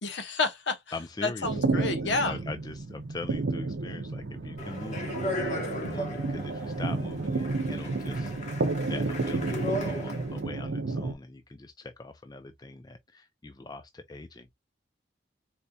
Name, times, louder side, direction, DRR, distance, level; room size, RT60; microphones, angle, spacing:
voice 1, 0.0-0.8 1.2-2.4, left 3 dB, 75° left, 0.8 m, -29 dB
voice 2, 0.9-5.5 5.8-8.3 8.8-14.5, left 2 dB, 20° left, 0.4 m, -42 dB
sound 1, 1.4-11.1, right 3 dB, 85° right, 0.6 m, -31 dB
Speech, 4.6-10.4, left 1 dB, 40° left, 1.0 m, -36 dB
4.3 x 2.7 x 2.2 m
head